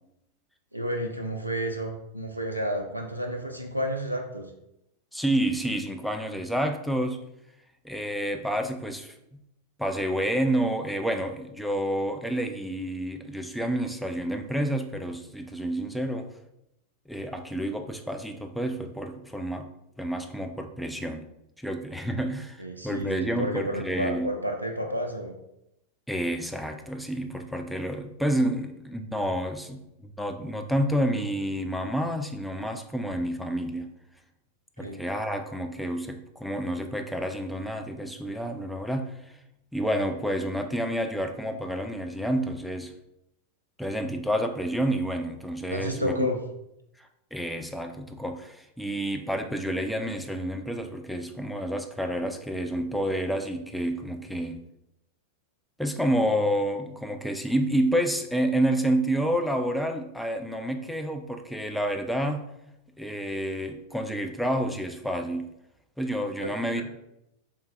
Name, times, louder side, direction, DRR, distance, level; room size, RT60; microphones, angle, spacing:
voice 1, 0.7-4.5 22.6-25.3 34.8-35.0 45.7-46.4, equal, 85° right, 4 dB, 0.3 m, -31 dB
voice 2, 5.1-7.2 7.8-9.4 9.8-16.3 17.1-19.7 20.0-21.2 21.6-24.3 26.1-29.9 30.2-33.9 34.8-39.2 39.7-42.9 43.8-46.3 47.0-54.6 55.8-62.4 63.0-65.5 66.0-66.8, right 1 dB, ahead, 5 dB, 0.3 m, -29 dB
3.3 x 3.1 x 2.4 m, 0.84 s
figure-of-eight pair, 90°, 0 cm